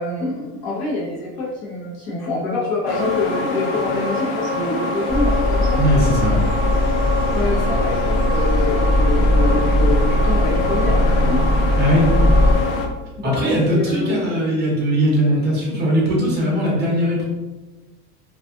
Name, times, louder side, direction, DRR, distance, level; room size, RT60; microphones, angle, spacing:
voice 1, 0.0-5.8 7.3-11.4 13.2-14.2, left 3 dB, 50° left, -5 dB, 1.0 m, -26 dB
sound 1, 2.9-12.9, left 3 dB, 75° left, 0.6 m, -24 dB
sound 2, 5.1-12.5, left 1 dB, 10° left, 1.2 m, -19 dB
voice 2, 5.8-6.5 11.8-12.1 13.2-17.2, equal, 25° right, -3 dB, 0.7 m, -19 dB
2.4 x 2.4 x 2.4 m, 1.1 s
cardioid pair, 160°, 44 cm